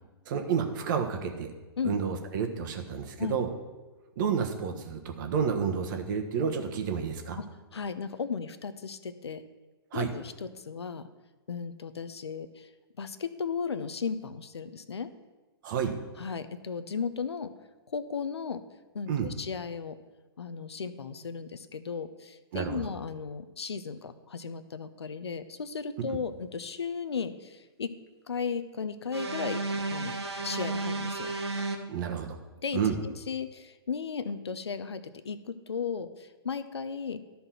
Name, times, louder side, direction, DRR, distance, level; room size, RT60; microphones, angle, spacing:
voice 1, 0.3-1.5 1.8-3.5 4.2-7.4 9.9-10.1 15.6-15.9 19.1-19.3 22.5-22.8 31.9-32.3 32.7-33.0, right 7 dB, 50° right, 5 dB, 1.3 m, -30 dB
voice 2, 7.7-9.4 9.9-11.1 11.5-12.7 13.0-15.1 16.2-17.5 17.9-18.6 18.9-20.0 20.4-27.9 28.3-29.6 29.9-31.3 32.6-37.2, left 5 dB, 80° left, 11 dB, 0.7 m, -35 dB
sound 1, 29.1-31.8, right 3 dB, 85° right, 1.2 m, -32 dB
12.5 x 4.3 x 5.8 m, 1.2 s
figure-of-eight pair, 120°, 14 cm